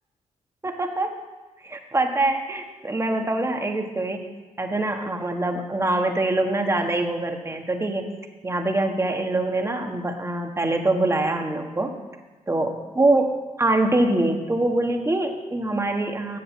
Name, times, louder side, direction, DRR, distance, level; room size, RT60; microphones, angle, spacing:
voice 1, 0.6-1.2 1.6-4.3 4.6-8.1 8.4-11.9 12.5-16.4, right 2 dB, 20° right, 3 dB, 1.7 m, -24 dB
11.0 x 7.8 x 7.4 m, 1.2 s
cardioid pair, 80°, 13 cm